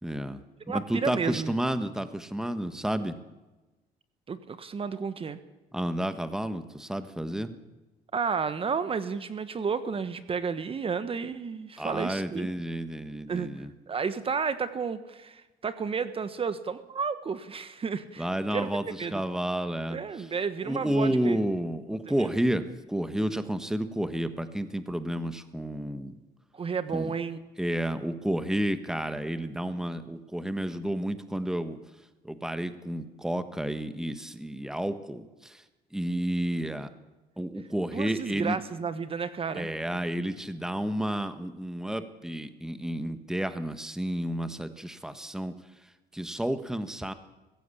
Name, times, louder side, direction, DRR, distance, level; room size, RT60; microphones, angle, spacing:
voice 1, 0.0-0.4 0.7-3.2 5.7-7.5 11.8-13.7 18.2-20.3 20.6-26.2 26.9-27.1 27.6-31.8 32.2-35.6 35.9-36.9 37.4-38.6 39.5-45.5 46.1-47.1, right 1 dB, 5° right, 10 dB, 1.4 m, -31 dB
voice 2, 0.7-1.5 4.3-5.4 8.1-12.5 13.3-13.5 13.9-18.7 19.0-19.2 19.9-21.4 22.2-22.3 26.5-27.4 37.9-39.7, right 5 dB, 35° right, 12 dB, 1.3 m, -32 dB
21.0 x 15.5 x 8.5 m, 1.1 s
cardioid pair, 110°, 17 cm